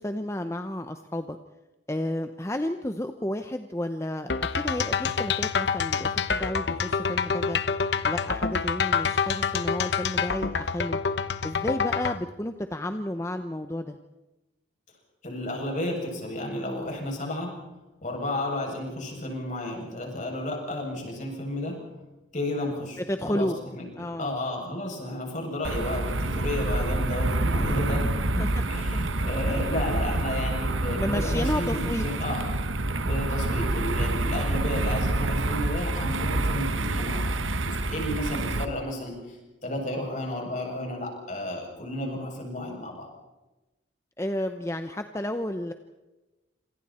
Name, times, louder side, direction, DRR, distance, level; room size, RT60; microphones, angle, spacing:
voice 1, 0.0-1.4 1.9-7.6 8.0-11.0 11.4-14.0 23.0-23.6 24.0-24.4 28.3-28.6 29.5-29.6 31.0-32.0 44.2-45.7, left 1 dB, 15° left, 8 dB, 0.8 m, -31 dB
sound 1, 4.3-12.2, left 5 dB, 60° left, 1.0 m, -27 dB
voice 2, 15.2-17.5 18.0-21.8 22.3-32.4 33.0-39.4 39.6-43.1, left 1 dB, 40° left, 0 dB, 7.4 m, -32 dB
sound 2, 25.6-38.7, right 2 dB, 85° right, 1.3 m, -27 dB
27.0 x 27.0 x 4.4 m, 1.1 s
head